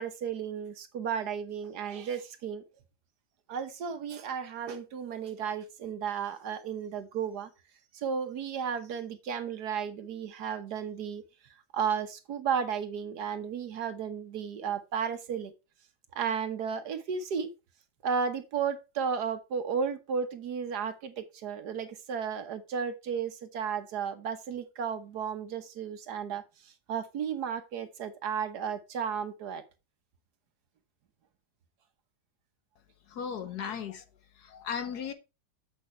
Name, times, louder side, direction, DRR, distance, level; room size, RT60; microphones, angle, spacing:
voice 1, 0.0-2.6 3.5-7.5 7.9-11.2 11.7-15.5 16.1-17.5 18.0-29.6, right 7 dB, 65° right, 1.5 m, -34 dB
voice 2, 33.1-34.0 34.4-35.1, left 7 dB, 65° left, 1.4 m, -36 dB
7.6 x 6.2 x 4.4 m
omnidirectional pair, 2.0 m